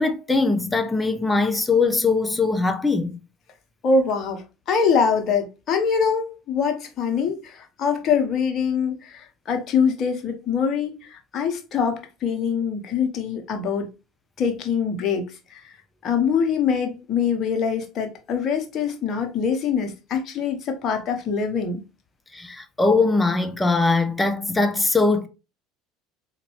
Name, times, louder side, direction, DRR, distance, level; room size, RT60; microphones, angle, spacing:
voice 1, 0.0-3.2 22.3-25.3, left 3 dB, 15° left, 0.5 m, -21 dB
voice 2, 3.8-13.9 14.4-15.2 15.5-15.7 16.0-21.8, left 6 dB, 50° left, 1.0 m, -24 dB
4.0 x 2.5 x 3.1 m
hypercardioid pair, 70°, 0 cm